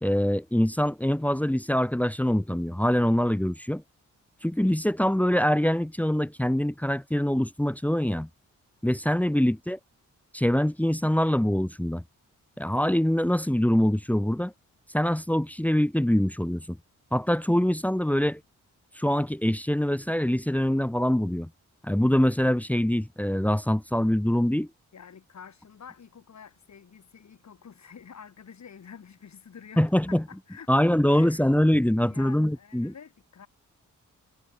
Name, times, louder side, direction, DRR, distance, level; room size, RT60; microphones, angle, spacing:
voice 1, 0.0-3.8 4.4-8.3 8.8-9.8 10.3-12.0 12.6-14.5 14.9-16.8 17.1-18.4 19.0-21.5 21.8-24.7 29.8-30.2 30.7-32.9, equal, 5° left, 1.0 m, -24 dB
voice 2, 24.9-33.5, left 7 dB, 60° left, 7.7 m, -49 dB
cardioid pair, 90°, 31 cm